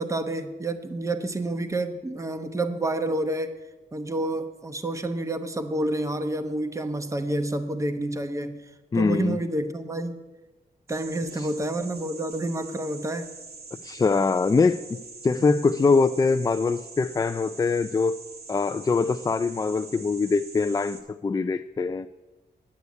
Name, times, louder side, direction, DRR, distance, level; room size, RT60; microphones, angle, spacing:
voice 1, 0.0-3.6 3.9-8.6 8.9-10.2 10.9-13.3 15.4-15.7, right 1 dB, 20° right, 8 dB, 0.9 m, -29 dB
voice 2, 8.9-9.4 11.3-11.5 13.8-18.2 18.5-22.1, left 4 dB, 25° left, 11 dB, 0.3 m, -23 dB
sound 1, 10.9-21.0, right 4 dB, 70° right, 1.8 m, -44 dB
9.6 x 8.4 x 9.4 m, 1.2 s
wide cardioid pair, 115°, 16 cm